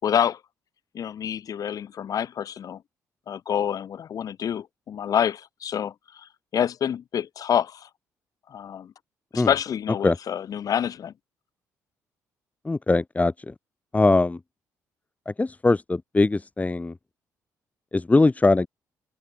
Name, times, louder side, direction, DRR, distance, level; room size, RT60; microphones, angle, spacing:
voice 1, 0.0-0.4 0.9-2.8 3.3-7.9 8.5-8.9 9.3-11.1, left 9 dB, 60° left, 6.6 m, -27 dB
voice 2, 12.7-13.5 13.9-14.4 15.3-16.9 17.9-18.7, left 3 dB, 20° left, 3.5 m, -21 dB
supercardioid pair, 65°, 7 cm